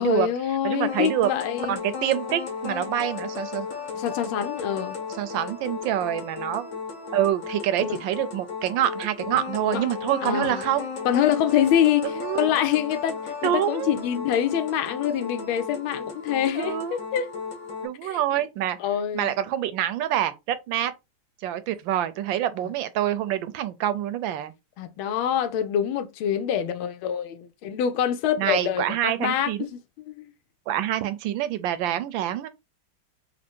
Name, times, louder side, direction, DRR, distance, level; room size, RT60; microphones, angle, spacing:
voice 1, 0.0-1.8 3.9-5.0 7.8-8.0 9.7-9.8 10.2-10.6 11.0-17.3 18.0-18.2 18.8-19.3 22.6-22.7 24.8-29.7 30.0-30.3, left 9 dB, 85° left, 1.5 m, -25 dB
voice 2, 0.6-1.3 1.7-3.7 5.2-6.7 7.1-10.9 12.0-12.5 13.4-13.9 16.6-17.0 17.8-18.8 19.1-20.9 21.4-24.5 28.4-29.7 30.7-32.5, right 11 dB, 75° right, 1.2 m, -26 dB
sound 1, 0.9-17.9, left 5 dB, 65° left, 2.1 m, -35 dB
4.3 x 2.4 x 4.4 m
omnidirectional pair, 2.2 m